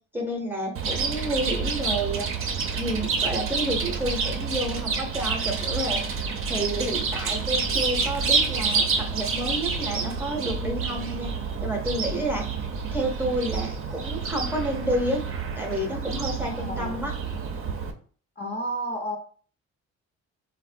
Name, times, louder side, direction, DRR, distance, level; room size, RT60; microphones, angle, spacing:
voice 1, 0.1-2.3 2.7-6.0 6.5-12.5 12.9-15.2 15.6-17.1, right 1 dB, 5° right, 1 dB, 0.7 m, -30 dB
Chirp tweet, 0.8-17.9, right 5 dB, 45° right, 0.5 m, -28 dB
voice 2, 16.2-17.0 18.4-19.2, right 1 dB, 35° left, 3 dB, 0.7 m, -32 dB
3.4 x 2.1 x 2.5 m, 0.44 s
cardioid pair, 90°, 30 cm